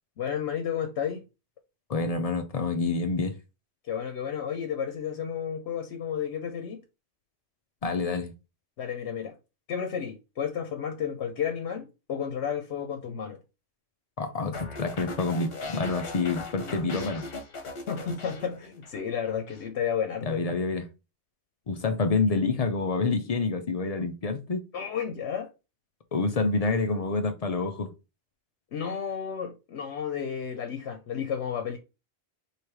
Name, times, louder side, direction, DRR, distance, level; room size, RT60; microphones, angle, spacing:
voice 1, 0.2-1.2 3.9-6.8 8.8-9.3 9.7-13.4 17.9-20.4 24.7-25.5 28.7-31.8, left 8 dB, 90° left, 0.9 m, -32 dB
voice 2, 1.9-3.4 7.8-8.3 14.2-17.3 20.2-20.8 21.7-24.6 26.1-27.9, left 3 dB, 45° left, 0.5 m, -27 dB
sound 1, 14.5-19.0 19.3-19.7, left 2 dB, 65° left, 1.1 m, -38 dB
3.2 x 2.8 x 4.5 m
omnidirectional pair, 1.1 m